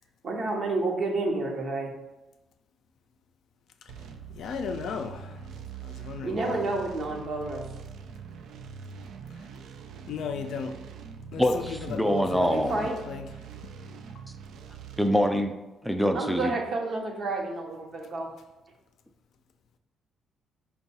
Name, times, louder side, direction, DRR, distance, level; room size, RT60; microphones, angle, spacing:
voice 1, 0.2-1.9 6.2-7.6 12.5-13.0 16.1-18.3, right 2 dB, 55° right, 0.8 m, -30 dB
sound 1, 3.9-15.1, right 6 dB, 80° right, 0.3 m, -43 dB
voice 2, 4.3-5.2 5.8-6.3 10.1-10.7 11.3-12.7 13.1-13.2, left 6 dB, 70° left, 0.4 m, -35 dB
voice 3, 11.4-12.9 15.0-15.5 15.8-16.5, equal, ahead, 0.4 m, -25 dB
4.4 x 2.3 x 4.1 m
cardioid pair, 90°, 0 cm